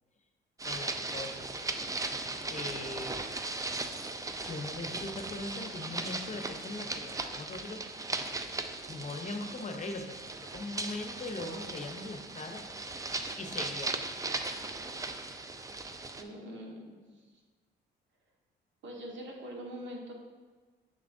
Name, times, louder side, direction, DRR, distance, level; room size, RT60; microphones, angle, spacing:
voice 1, 0.6-1.5 1.9-2.2 2.5-3.1 4.0-4.1 4.4-7.8 8.9-10.2 10.5-12.6 13.4-14.1, left 2 dB, 35° left, 5 dB, 0.7 m, -40 dB
sound 1, 0.6-16.2, right 2 dB, 15° right, 0.4 m, -38 dB
voice 2, 10.1-10.9 16.2-17.3 18.8-20.1, equal, 70° right, 0 dB, 1.5 m, -45 dB
7.0 x 6.6 x 2.6 m, 1.4 s
cardioid pair, 90°, 20 cm